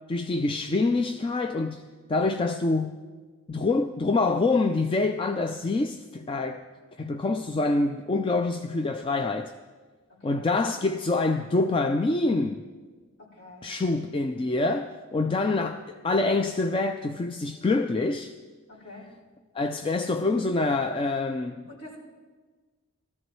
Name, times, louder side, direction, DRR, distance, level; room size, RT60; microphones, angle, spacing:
voice 1, 0.1-3.0 3.5-6.6 7.0-9.5 10.2-12.6 13.6-18.3 19.5-21.7, left 3 dB, 25° left, 0.3 m, -26 dB
voice 2, 10.2-10.6 13.2-13.7 18.7-19.1 20.1-20.2 21.7-22.0, left 2 dB, 55° left, 4.8 m, -46 dB
19.0 x 13.5 x 3.1 m
head